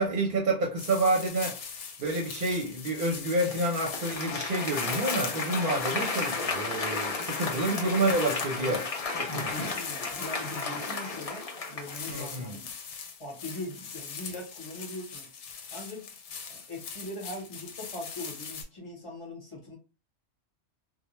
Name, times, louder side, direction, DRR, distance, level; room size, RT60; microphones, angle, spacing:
voice 1, 0.0-1.6 2.0-8.9 9.3-9.5 12.1-12.6, right 2 dB, 55° right, 0.7 m, -28 dB
sound 1, 0.8-18.6, left 6 dB, 90° left, 0.9 m, -42 dB
Applause, 3.4-12.3, left 4 dB, 45° left, 0.5 m, -33 dB
voice 2, 9.2-12.7 13.2-15.3 15.7-16.1 16.5-19.8, left 1 dB, 30° left, 1.0 m, -41 dB
2.2 x 2.1 x 2.9 m
omnidirectional pair, 1.2 m